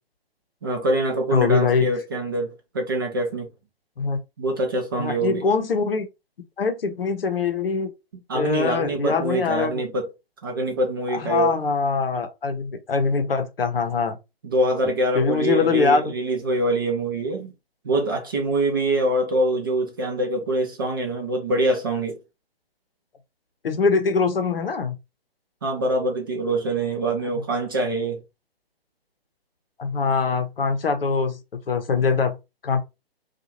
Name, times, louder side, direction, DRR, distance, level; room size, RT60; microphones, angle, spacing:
voice 1, 0.6-3.5 4.4-5.4 8.3-10.1 10.4-11.5 14.4-17.5 17.8-22.2 25.6-28.2, right 1 dB, 20° right, 0.5 m, -24 dB
voice 2, 1.3-1.9 4.0-4.2 5.0-6.1 6.6-7.9 8.3-9.8 11.1-14.2 15.1-16.0 23.6-25.0 29.8-31.4 31.7-32.4 32.6-32.8, left 5 dB, 65° left, 0.7 m, -23 dB
2.7 x 2.4 x 2.9 m
figure-of-eight pair, 135°, 31 cm